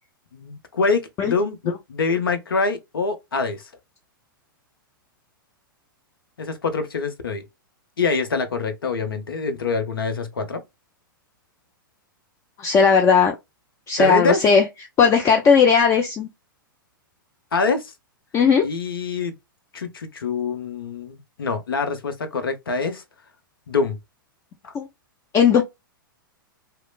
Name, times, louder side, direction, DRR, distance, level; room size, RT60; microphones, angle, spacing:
voice 1, 0.3-1.6 1.9-3.6 6.4-7.4 8.0-10.6 14.0-14.4 17.5-17.9 18.6-19.3 19.7-23.0 23.7-24.0 24.6-24.7, left 4 dB, 80° left, 0.7 m, -25 dB
voice 2, 12.6-13.3 13.9-14.6 15.0-16.3 18.3-18.7 24.7-24.9 25.3-25.6, left 6 dB, 25° left, 0.5 m, -16 dB
3.0 x 2.1 x 2.2 m
figure-of-eight pair, 105°, 12 cm